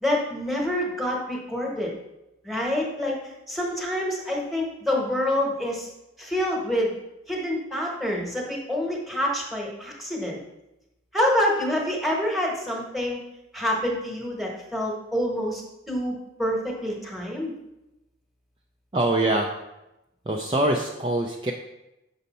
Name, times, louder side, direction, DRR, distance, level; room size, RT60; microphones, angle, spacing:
voice 1, 0.0-1.9 2.4-3.2 3.5-5.9 6.2-6.9 7.3-10.4 11.1-13.2 13.5-16.1 16.4-17.5, left 1 dB, ahead, -2 dB, 1.1 m, -27 dB
voice 2, 18.9-19.5 20.3-21.5, right 1 dB, 25° right, 1 dB, 0.4 m, -24 dB
6.3 x 5.4 x 4.2 m, 0.94 s
head